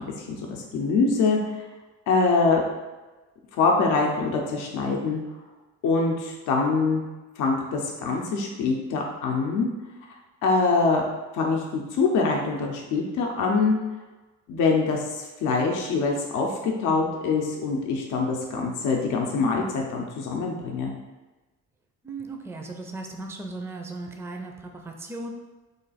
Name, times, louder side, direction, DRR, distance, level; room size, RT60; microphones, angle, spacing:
voice 1, 0.0-1.4 2.1-2.6 3.5-5.2 5.8-7.0 7.4-9.7 10.4-11.1 11.3-13.8 14.5-20.9, left 4 dB, 90° left, 0 dB, 0.6 m, -24 dB
voice 2, 22.0-25.3, right 2 dB, 10° right, 3 dB, 0.4 m, -37 dB
3.2 x 2.3 x 4.0 m, 1.2 s
cardioid pair, 90°, 30 cm